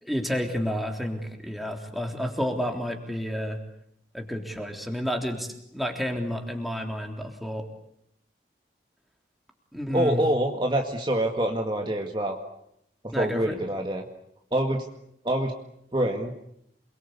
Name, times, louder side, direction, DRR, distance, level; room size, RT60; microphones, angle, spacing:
voice 1, 0.0-3.6 4.1-7.7 9.7-10.2 13.1-13.5, equal, ahead, 3 dB, 3.6 m, -30 dB
voice 2, 9.9-12.4 13.0-14.0 14.5-14.9 15.2-15.5 15.9-16.3, right 1 dB, 25° right, 3 dB, 2.0 m, -25 dB
28.0 x 22.5 x 8.4 m, 0.76 s
head